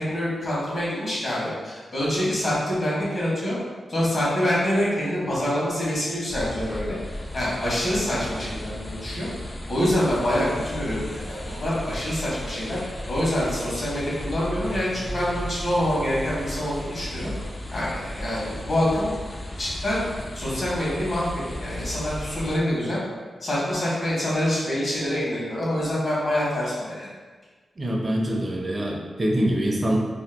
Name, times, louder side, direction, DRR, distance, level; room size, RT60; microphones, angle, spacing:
voice 1, 0.0-3.6 3.9-7.0 7.3-9.3 9.7-12.8 13.1-17.3 17.7-19.1 19.5-23.0 23.4-27.1, left 1 dB, 55° left, -7 dB, 1.2 m, -26 dB
sound 1, 6.3-22.6, left 1 dB, 25° left, 0.3 m, -35 dB
voice 2, 27.8-30.0, right 1 dB, 35° right, 0 dB, 0.5 m, -24 dB
2.8 x 2.1 x 3.4 m, 1.4 s
wide cardioid pair, 90°, 0 cm